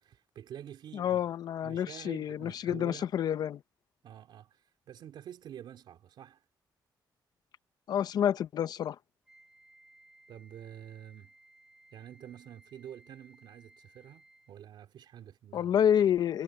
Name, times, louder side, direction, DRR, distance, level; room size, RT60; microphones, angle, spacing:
voice 1, 0.0-1.2 1.6-3.1 4.0-6.4 10.3-11.3 11.9-15.8, right 10 dB, 80° right, 3.4 m, -48 dB
voice 2, 0.9-3.6 7.9-9.0 15.5-16.4, left 9 dB, 60° left, 0.7 m, -28 dB
Wind instrument woodwind instrument, 9.3-14.6, right 1 dB, 5° right, 7.2 m, -61 dB
wide cardioid pair, 175°, 8 cm